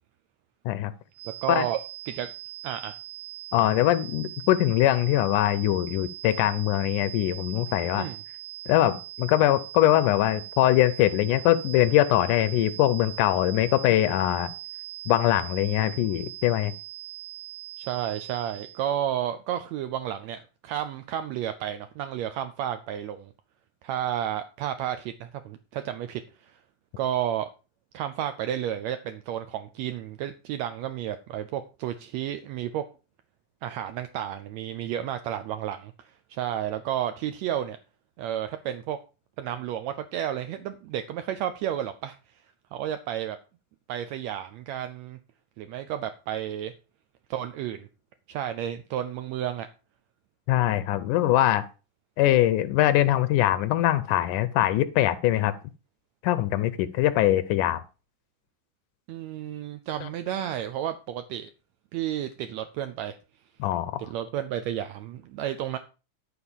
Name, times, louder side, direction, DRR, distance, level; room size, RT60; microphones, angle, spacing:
sound 1, 1.1-18.9, right 15 dB, 60° right, 1.7 m, -41 dB
voice 1, 1.4-1.8 2.1-2.3 2.6-3.0 8.0-8.1 17.8-23.3 23.8-26.6 27.0-27.5 27.9-32.8 33.6-35.9 36.3-37.8 38.2-39.0 39.4-42.2 42.7-43.4 43.9-45.2 45.6-46.7 47.3-47.9 48.3-49.7 59.1-61.5 61.9-63.2 64.1-65.8, right 11 dB, 80° right, 1.6 m, -31 dB
voice 2, 3.5-8.1 8.7-14.5 15.1-16.7 50.5-51.7 52.2-55.5 56.2-57.8 60.0-60.1 63.6-64.0, left 13 dB, 80° left, 2.0 m, -22 dB
11.5 x 4.3 x 7.1 m
omnidirectional pair, 3.8 m